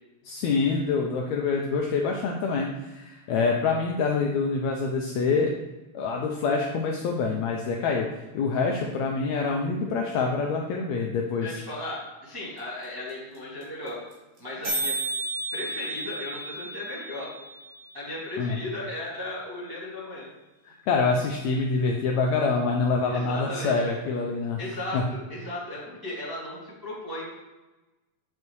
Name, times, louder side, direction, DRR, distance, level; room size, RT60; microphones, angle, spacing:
voice 1, 0.2-5.5 5.9-8.1 8.3-11.6 18.4-18.6 20.7-24.6 24.9-25.0, left 4 dB, 80° left, 1 dB, 1.6 m, -26 dB
voice 2, 11.4-14.0 14.4-15.0 15.5-17.3 17.9-20.3 23.0-23.7 24.6-27.2, left 1 dB, 10° right, -8 dB, 1.5 m, -36 dB
sound 1, 12.6-12.7 12.8-12.9 13.1-13.4 13.6-13.7 13.9-14.1 14.4-14.5 14.6-18.6, right 2 dB, 60° right, 3.2 m, -33 dB
8.4 x 5.3 x 3.1 m, 1.1 s
omnidirectional pair, 3.7 m